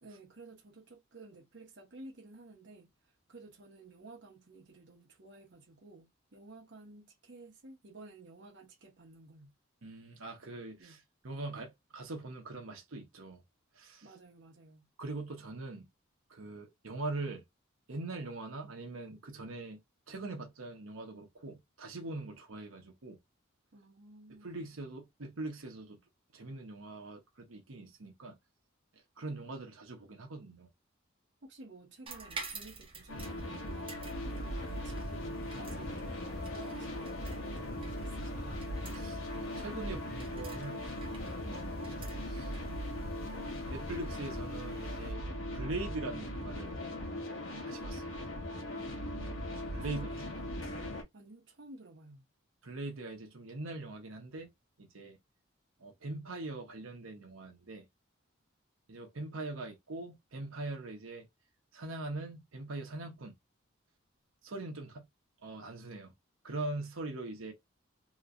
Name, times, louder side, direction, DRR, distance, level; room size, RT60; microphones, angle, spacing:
voice 1, 0.0-2.9 3.3-9.5 10.8-11.0 14.0-14.9 23.7-24.5 31.4-36.0 36.4-38.7 48.7-50.6 51.1-52.3, right 2 dB, 60° right, 1.0 m, -54 dB
voice 2, 9.8-13.4 13.7-14.0 15.0-15.9 16.3-17.4 17.9-19.8 20.1-23.2 24.4-26.0 26.3-28.4 29.2-30.7 38.9-40.9 41.4-41.6 42.3-42.5 42.9-45.2 45.5-46.7 47.6-48.2 49.7-50.1 52.6-54.5 54.8-55.2 55.8-57.9 58.9-61.3 61.7-63.3 64.4-65.0 65.4-66.1 66.4-67.5, right 2 dB, 90° right, 1.0 m, -42 dB
sound 1, 32.1-43.4, right 3 dB, 25° right, 0.9 m, -50 dB
sound 2, 33.1-51.0, left 1 dB, 75° left, 1.0 m, -39 dB
sound 3, 34.1-45.1, left 1 dB, 50° left, 0.7 m, -47 dB
3.0 x 3.0 x 2.5 m
head